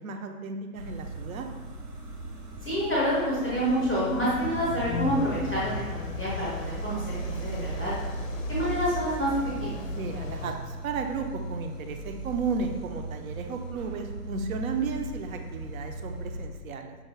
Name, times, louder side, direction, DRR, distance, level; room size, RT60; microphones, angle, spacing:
voice 1, 0.0-1.5 9.9-17.0, right 5 dB, 65° right, 5 dB, 0.6 m, -34 dB
sound 1, 0.7-16.5, right 2 dB, 85° right, 1.1 m, -37 dB
voice 2, 2.6-7.9 8.5-9.3 9.6-9.8, equal, 5° left, -9 dB, 0.5 m, -28 dB
sound 2, 3.5-10.6, left 5 dB, 60° left, 0.5 m, -37 dB
5.7 x 2.1 x 4.4 m, 1.3 s
hypercardioid pair, 155°, 46 cm